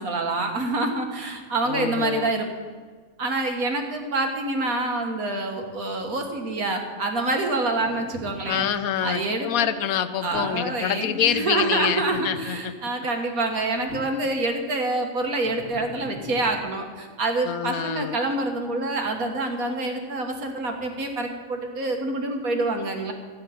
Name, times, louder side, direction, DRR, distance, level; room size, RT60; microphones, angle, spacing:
voice 1, 0.0-2.5 3.2-8.7 9.0-9.5 10.2-23.1, right 2 dB, 65° right, 3 dB, 2.0 m, -26 dB
voice 2, 1.7-2.3 8.5-12.7 17.4-18.2, left 9 dB, 70° left, 11 dB, 1.1 m, -26 dB
sound 1, 7.8-9.6 10.3-10.8 11.7-12.8 13.5-14.5 15.4-16.6, left 3 dB, 45° left, 1.4 m, -42 dB
14.0 x 9.7 x 5.8 m, 1.5 s
omnidirectional pair, 1.6 m